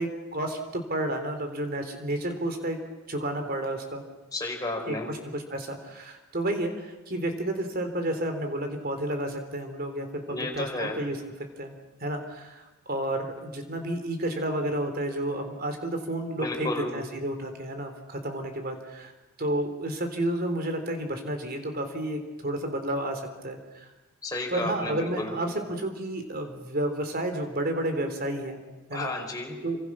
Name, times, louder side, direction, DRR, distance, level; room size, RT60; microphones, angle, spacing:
voice 1, 0.0-2.8 3.1-4.0 4.9-11.2 11.6-11.7 12.0-19.1 19.4-23.9 24.5-28.6 28.9-29.1 29.6-29.8, right 1 dB, 45° right, 6 dB, 3.5 m, -31 dB
voice 2, 4.3-5.1 10.3-11.0 16.4-16.9 24.2-25.3 28.9-29.6, left 2 dB, 20° left, 1 dB, 4.6 m, -32 dB
28.0 x 25.0 x 6.2 m, 1.1 s
head